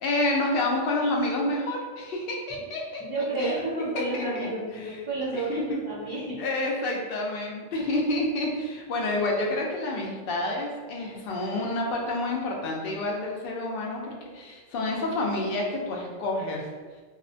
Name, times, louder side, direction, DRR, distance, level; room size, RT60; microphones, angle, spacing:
voice 1, 0.0-3.0 3.4-3.6 4.1-4.5 4.8-5.0 5.3-5.8 6.4-16.6, left 2 dB, 65° left, -1 dB, 0.7 m, -29 dB
voice 2, 3.0-6.4 7.8-8.0, right 2 dB, 35° right, -9 dB, 0.4 m, -30 dB
2.6 x 2.1 x 2.6 m, 1.4 s
omnidirectional pair, 1.1 m